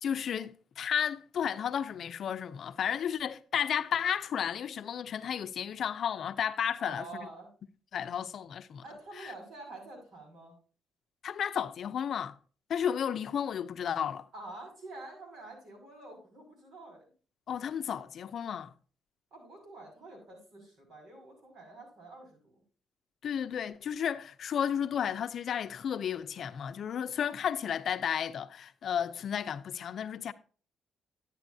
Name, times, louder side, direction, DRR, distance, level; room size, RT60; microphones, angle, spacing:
voice 1, 0.0-7.3 7.9-8.8 9.2-9.3 11.2-12.4 12.7-14.3 17.5-18.7 23.2-30.3, left 8 dB, 60° left, 0.5 m, -33 dB
voice 2, 6.8-7.5 8.8-10.6 14.3-17.1 19.3-22.5, right 2 dB, 75° right, 5.6 m, -47 dB
11.5 x 9.1 x 2.7 m
cardioid pair, 90°, 0 cm